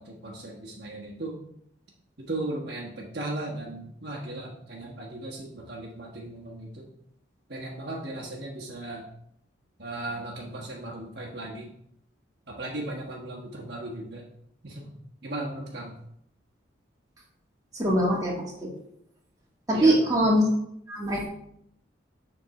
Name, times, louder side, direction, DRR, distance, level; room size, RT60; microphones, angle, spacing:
voice 1, 0.0-1.4 2.2-6.9 7.5-9.0 9.8-11.7 12.5-14.2 14.6-14.9 15.2-16.0 19.7-20.2, right 2 dB, 55° right, -3 dB, 1.3 m, -36 dB
voice 2, 17.7-18.3 18.6-18.7 19.7-20.5 20.9-21.3, right 1 dB, 20° right, -4 dB, 2.0 m, -22 dB
7.6 x 3.8 x 5.8 m, 0.72 s
head